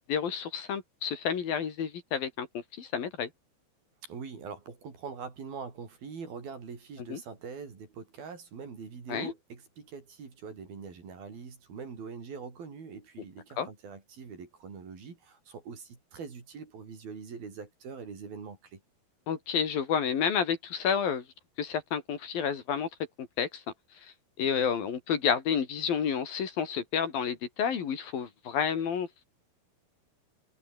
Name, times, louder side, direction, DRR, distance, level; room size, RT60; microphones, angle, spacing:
voice 1, 0.1-3.3 7.1-7.2 9.1-9.3 13.6-13.7 19.3-21.2 21.6-22.9 23.2-23.6 24.0-29.3, left 7 dB, 60° left, 4.4 m, -30 dB
voice 2, 4.0-18.8, right 5 dB, 60° right, 6.6 m, -43 dB
omnidirectional pair, 4.8 m